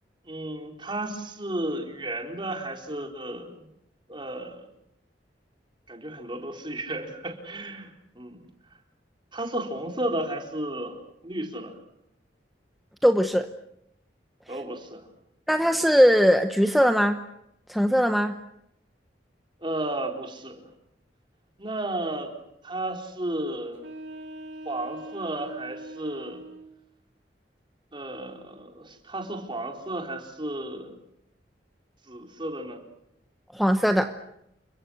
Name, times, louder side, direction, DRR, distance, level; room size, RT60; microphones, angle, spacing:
voice 1, 0.2-3.7 4.1-4.6 5.9-8.4 9.3-11.0 11.2-11.7 14.5-15.0 19.6-20.6 21.6-22.3 22.6-23.9 24.6-26.4 27.9-31.0 32.1-32.8, right 1 dB, 30° right, 2 dB, 4.2 m, -33 dB
voice 2, 13.0-13.5 15.5-17.2 17.7-18.3 33.5-34.1, equal, ahead, 6 dB, 1.0 m, -20 dB
sound 1, 23.7-26.7, right 1 dB, 70° right, 4.8 m, -41 dB
29.5 x 24.0 x 6.5 m, 0.82 s
head